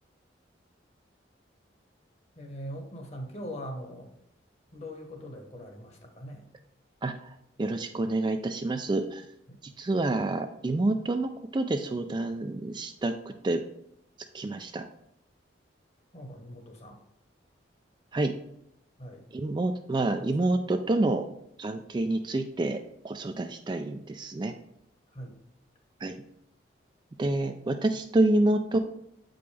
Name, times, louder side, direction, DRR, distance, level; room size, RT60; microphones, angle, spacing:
voice 1, 2.3-4.1 4.7-6.5 9.5-9.6 16.1-17.0 19.0-19.3 20.2-20.5 25.1-25.4, equal, 35° left, 3 dB, 1.2 m, -42 dB
voice 2, 7.0-9.3 9.8-13.6 14.3-14.8 18.1-18.3 19.3-21.2 21.6-22.8 23.0-24.5 26.0-26.2 27.2-28.8, right 2 dB, 25° right, 6 dB, 0.3 m, -28 dB
7.8 x 5.2 x 3.3 m, 0.77 s
head